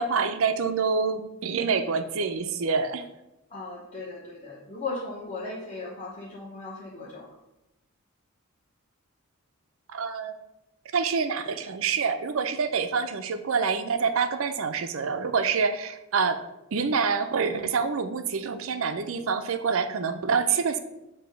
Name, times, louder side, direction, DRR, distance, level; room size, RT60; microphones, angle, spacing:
voice 1, 0.0-3.0 9.9-10.4 10.9-16.4 16.7-20.8, right 5 dB, 70° right, 9 dB, 0.5 m, -26 dB
voice 2, 3.5-7.3, left 3 dB, 30° left, -6 dB, 1.0 m, -37 dB
6.7 x 2.8 x 5.1 m, 0.94 s
head